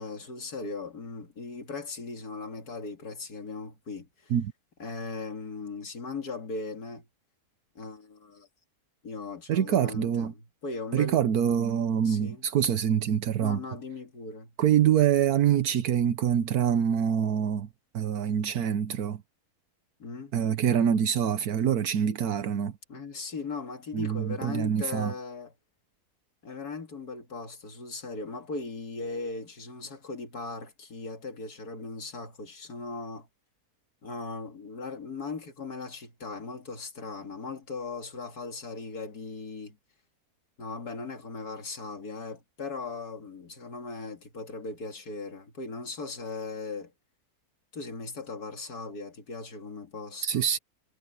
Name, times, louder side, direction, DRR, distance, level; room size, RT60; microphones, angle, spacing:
voice 1, 0.0-4.3 4.8-7.1 7.7-8.5 9.0-11.2 12.0-12.5 13.4-14.5 20.0-20.3 22.9-25.5 26.4-33.3 34.0-39.8 40.6-46.9 47.7-50.4, left 3 dB, 85° left, 2.9 m, -38 dB
voice 2, 9.5-10.3 10.9-13.6 14.6-17.7 17.9-19.2 20.3-22.7 23.9-25.1 50.2-50.6, right 9 dB, 80° right, 1.4 m, -25 dB
omnidirectional pair, 1.6 m